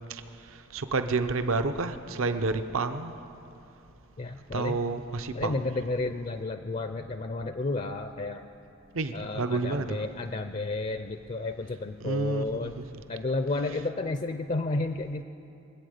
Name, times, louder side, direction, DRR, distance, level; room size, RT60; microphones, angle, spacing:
voice 1, 0.5-3.2 4.5-5.6 8.9-10.0 12.0-12.8, right 3 dB, 70° right, 9 dB, 0.7 m, -29 dB
voice 2, 4.2-4.9 5.3-8.5 9.1-12.7 13.1-15.2, left 2 dB, 35° left, 8 dB, 0.4 m, -32 dB
23.5 x 8.4 x 6.6 m, 2.7 s
head